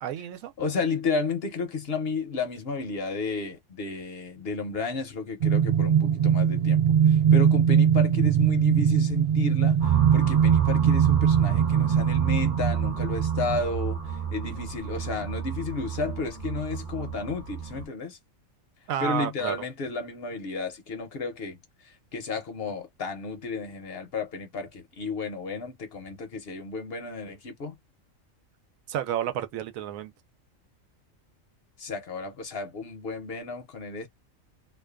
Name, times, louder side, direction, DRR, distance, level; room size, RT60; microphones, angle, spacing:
voice 1, 0.0-0.5 18.9-19.6 28.9-30.1, right 10 dB, 85° right, 1.0 m, -30 dB
voice 2, 0.6-18.2 19.0-27.7 31.8-34.1, left 4 dB, 60° left, 0.7 m, -33 dB
sound 1, 5.4-13.6, right 8 dB, 60° right, 0.4 m, -21 dB
sound 2, 9.8-17.9, right 8 dB, 45° right, 1.0 m, -31 dB
2.5 x 2.2 x 2.2 m
omnidirectional pair, 1.4 m